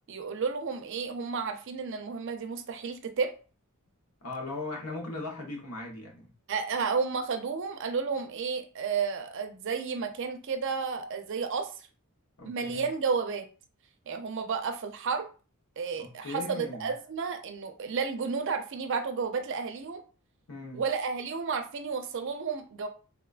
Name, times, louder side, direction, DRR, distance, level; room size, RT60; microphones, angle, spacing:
voice 1, 0.1-3.3 6.5-11.9 12.5-13.5 14.1-15.3 15.8-20.0 20.7-22.9, right 5 dB, 55° right, 0.5 m, -32 dB
voice 2, 4.2-6.3 12.4-12.9 16.0-16.9 20.5-20.8, left 2 dB, 85° left, 1.0 m, -38 dB
3.6 x 2.2 x 2.4 m
head